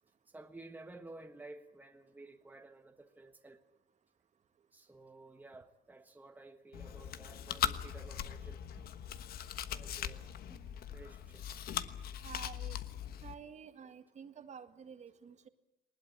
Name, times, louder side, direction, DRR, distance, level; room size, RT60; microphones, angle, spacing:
voice 1, 0.3-3.6 4.7-8.6 9.7-10.3 10.9-11.4, right 2 dB, 10° right, 1.4 m, -53 dB
Chewing mastication, 6.7-13.3, left 10 dB, 65° left, 1.3 m, -40 dB
voice 2, 12.2-12.8 13.2-15.5, right 7 dB, 45° right, 1.8 m, -50 dB
20.0 x 20.0 x 8.7 m
cardioid pair, 110°, 17 cm